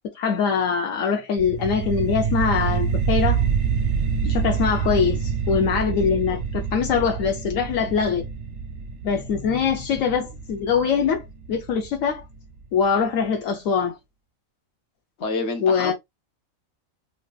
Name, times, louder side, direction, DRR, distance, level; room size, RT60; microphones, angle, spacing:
voice 1, 0.1-3.4 4.2-8.3 9.0-12.2 12.7-14.0 15.6-15.9, left 6 dB, 75° left, 1.0 m, -23 dB
sound 1, 1.4-12.4, right 6 dB, 65° right, 0.8 m, -26 dB
voice 2, 15.2-15.9, left 3 dB, 60° left, 1.1 m, -27 dB
3.2 x 2.6 x 2.3 m
omnidirectional pair, 1.4 m